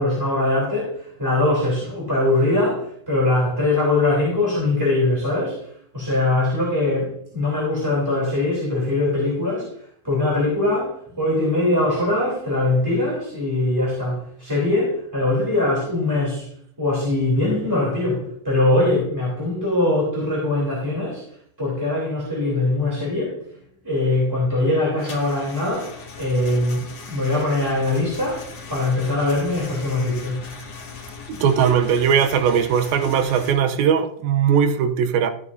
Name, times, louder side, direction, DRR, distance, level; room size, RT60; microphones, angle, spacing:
voice 1, 0.0-9.7 10.0-16.5 16.8-21.2 21.6-23.4 23.8-30.5, left 2 dB, 5° right, 2.6 m, -22 dB
sound 1, 25.0-33.5, left 5 dB, 50° left, 2.6 m, -39 dB
voice 2, 31.3-35.3, right 7 dB, 80° right, 2.5 m, -19 dB
14.0 x 9.2 x 2.6 m
omnidirectional pair, 4.3 m